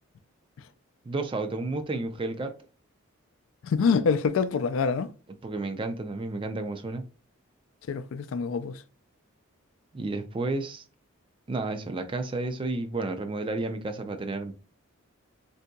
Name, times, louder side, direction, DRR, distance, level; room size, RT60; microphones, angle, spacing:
voice 1, 1.0-2.5 5.4-7.0 9.9-10.8 11.5-14.5, right 2 dB, 25° right, 0.3 m, -31 dB
voice 2, 3.6-5.1 7.9-8.8, left 5 dB, 65° left, 0.3 m, -25 dB
3.7 x 2.7 x 2.2 m
head